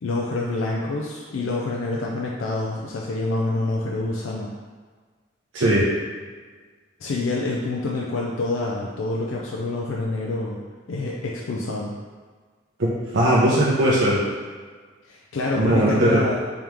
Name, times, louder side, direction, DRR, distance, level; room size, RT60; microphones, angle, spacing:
voice 1, 0.0-4.5 7.0-10.6 10.9-11.9 15.0-16.4, left 2 dB, 80° left, -3 dB, 0.4 m, -27 dB
voice 2, 5.5-5.9 12.8-14.2 15.6-16.2, right 1 dB, 75° right, -7 dB, 0.6 m, -19 dB
3.5 x 3.4 x 3.0 m, 1.5 s
head